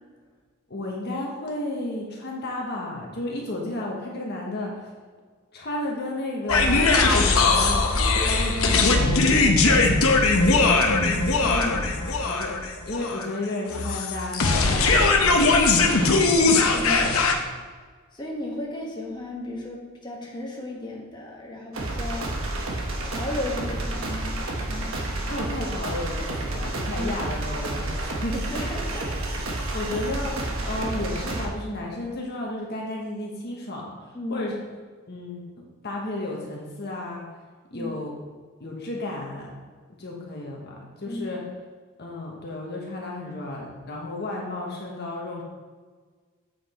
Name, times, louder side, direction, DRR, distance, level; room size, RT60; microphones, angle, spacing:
voice 1, 0.7-4.8 5.5-7.8 8.2-11.2 11.6-17.3 25.3-28.7 29.7-30.4 30.6-34.5 35.1-37.3 37.7-38.1 38.6-39.5 40.0-41.5 42.0-45.4, left 2 dB, 50° left, -2 dB, 1.2 m, -33 dB
sound 1, 6.5-17.3, left 3 dB, 75° left, 0.9 m, -20 dB
voice 2, 11.4-11.9 16.7-17.2 18.1-22.3 23.0-24.9 27.0-27.1 28.3-29.8 34.1-34.4 37.7-37.9 41.1-41.4, left 1 dB, 20° left, -3 dB, 1.4 m, -35 dB
sound 2, 21.7-31.5, right 2 dB, 65° right, 1.2 m, -30 dB
8.0 x 5.9 x 4.3 m, 1.5 s
head